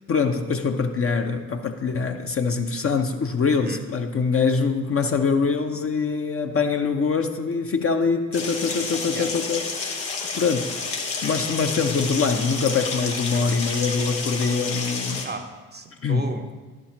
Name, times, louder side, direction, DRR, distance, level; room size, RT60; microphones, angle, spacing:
voice 1, 0.1-10.0 10.3-10.8 11.2-15.3 16.0-16.3, left 5 dB, 30° left, 0.6 m, -24 dB
voice 2, 3.5-3.9 9.1-9.3 13.3-13.6 15.2-16.5, right 3 dB, 20° right, 0.7 m, -35 dB
sound 1, 8.3-15.2, left 4 dB, 85° left, 1.0 m, -30 dB
12.5 x 4.5 x 2.9 m
figure-of-eight pair, 45°, 49 cm